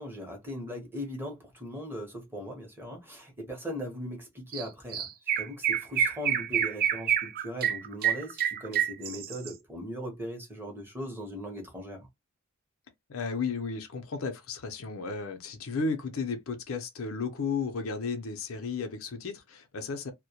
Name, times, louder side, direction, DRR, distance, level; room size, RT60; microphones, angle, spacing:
voice 1, 0.0-5.1 5.4-12.1, equal, 10° right, 0.8 m, -39 dB
Chirp tweet, 4.5-4.7 4.9-9.5, right 9 dB, 45° right, 0.3 m, -28 dB
voice 2, 13.1-20.1, left 4 dB, 70° left, 0.5 m, -34 dB
2.1 x 2.1 x 2.7 m
head